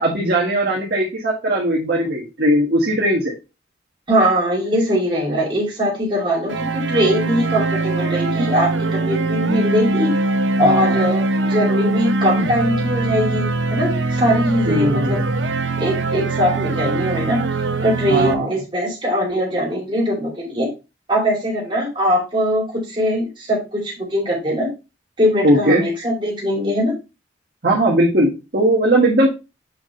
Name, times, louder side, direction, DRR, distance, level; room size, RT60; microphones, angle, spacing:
voice 1, 0.0-3.3 10.6-11.0 14.6-15.3 18.1-18.5 25.4-25.9 27.6-29.3, right 1 dB, 60° right, -2 dB, 1.6 m, -18 dB
voice 2, 4.1-10.1 10.6-15.2 15.8-17.4 17.8-20.7 21.1-24.7 25.2-26.9, equal, 30° right, -3 dB, 2.8 m, -21 dB
sound 1, 6.5-18.3, right 2 dB, 85° right, 0.7 m, -22 dB
7.2 x 5.1 x 3.1 m, 0.27 s
head